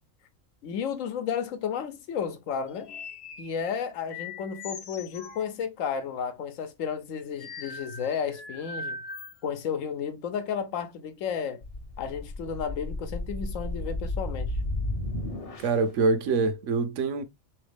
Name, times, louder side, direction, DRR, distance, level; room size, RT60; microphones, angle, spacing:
voice 1, 0.6-2.9 3.4-9.0 9.4-11.6 12.0-14.6, left 7 dB, 80° left, 1.1 m, -32 dB
sound 1, 2.7-3.8 4.1-5.5 7.4-9.4, left 3 dB, 60° left, 0.9 m, -41 dB
sound 2, 11.6-15.9, left 2 dB, 40° left, 0.5 m, -33 dB
voice 2, 15.6-17.2, right 4 dB, 70° right, 1.0 m, -25 dB
3.8 x 3.1 x 3.3 m
omnidirectional pair, 1.3 m